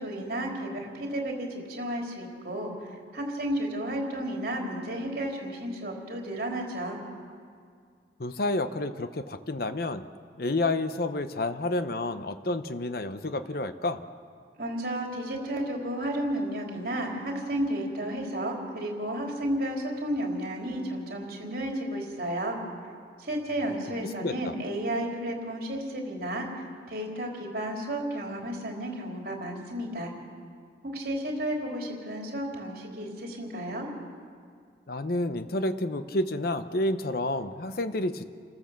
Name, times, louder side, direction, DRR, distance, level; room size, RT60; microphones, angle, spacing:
voice 1, 0.0-7.0 14.6-22.6 23.2-26.5 26.9-30.1 30.8-33.9, right 1 dB, 55° right, 0 dB, 3.8 m, -32 dB
voice 2, 8.2-10.0 10.4-14.0 24.2-24.5 34.9-38.2, left 2 dB, 55° left, 10 dB, 0.8 m, -29 dB
28.5 x 13.5 x 7.5 m, 2.2 s
head